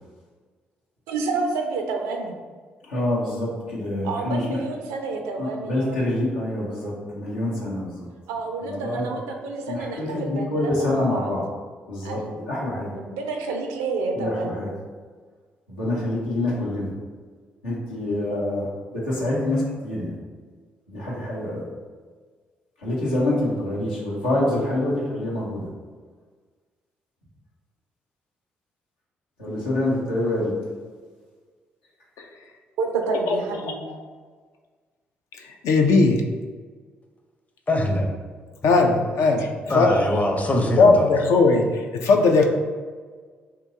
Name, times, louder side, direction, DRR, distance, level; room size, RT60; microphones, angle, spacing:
voice 1, 1.1-2.4 4.0-6.0 8.3-11.3 12.0-12.4 12.9-14.6 32.8-33.9, right 4 dB, 70° right, 3 dB, 0.4 m, -29 dB
voice 2, 2.9-4.6 5.4-8.1 8.6-9.1 9.7-11.4 11.9-12.9 14.1-14.7 15.7-16.9 17.6-20.1 20.9-21.6 22.8-25.7 29.4-30.5, left 1 dB, 85° left, -7 dB, 0.7 m, -26 dB
voice 3, 35.4-36.2 38.6-39.5 39.7-40.0 40.7-42.5, left 3 dB, 65° left, 2 dB, 0.3 m, -18 dB
voice 4, 37.7-38.1 39.7-41.1, left 1 dB, 25° left, 2 dB, 0.6 m, -22 dB
2.8 x 2.2 x 4.0 m, 1.5 s
figure-of-eight pair, 40°, 6 cm